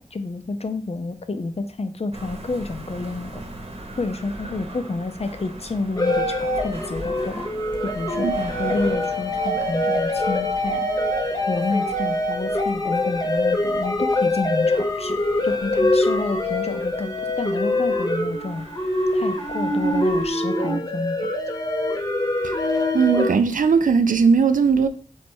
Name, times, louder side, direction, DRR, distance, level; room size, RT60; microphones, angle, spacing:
voice 1, 0.1-3.4 4.0-7.5 7.8-10.9 11.5-15.2 15.4-18.7 19.1-21.2, left 3 dB, 50° left, 0.5 m, -29 dB
sound 1, 2.1-20.3, right 1 dB, 45° right, 0.9 m, -40 dB
sound 2, 6.0-23.3, left 1 dB, 30° left, 0.9 m, -24 dB
voice 2, 22.9-24.9, right 5 dB, 80° right, 0.4 m, -18 dB
3.2 x 3.1 x 4.4 m
wide cardioid pair, 65°, 14 cm